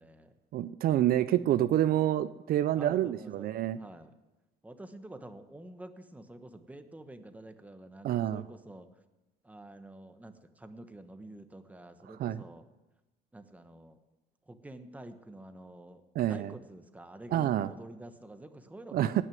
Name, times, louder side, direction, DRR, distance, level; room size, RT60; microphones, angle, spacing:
voice 1, 0.0-0.3 2.7-4.1 4.6-8.9 9.4-12.6 13.3-14.0 14.5-19.2, right 1 dB, 10° right, 8 dB, 1.2 m, -48 dB
voice 2, 0.5-3.8 8.0-8.5 12.1-12.4 16.1-16.5 17.3-17.7 18.9-19.2, right 12 dB, 60° right, 13 dB, 0.5 m, -28 dB
18.5 x 6.3 x 9.3 m, 1.1 s
cardioid pair, 110°, 17 cm